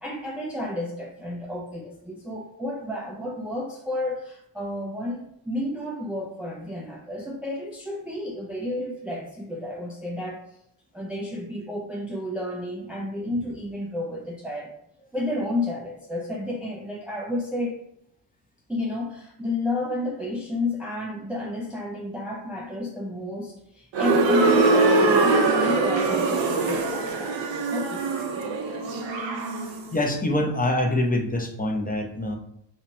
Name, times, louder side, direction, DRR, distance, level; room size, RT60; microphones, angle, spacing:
voice 1, 0.0-10.4 10.9-14.7 15.1-17.8 18.7-27.4 27.7-28.2, left 1 dB, 5° right, -2 dB, 0.6 m, -31 dB
sound 1, 23.9-29.8, right 3 dB, 75° right, 0.8 m, -22 dB
voice 2, 29.6-32.3, left 1 dB, 20° left, 1 dB, 0.8 m, -25 dB
3.0 x 2.4 x 4.2 m, 0.80 s
supercardioid pair, 50°, 44 cm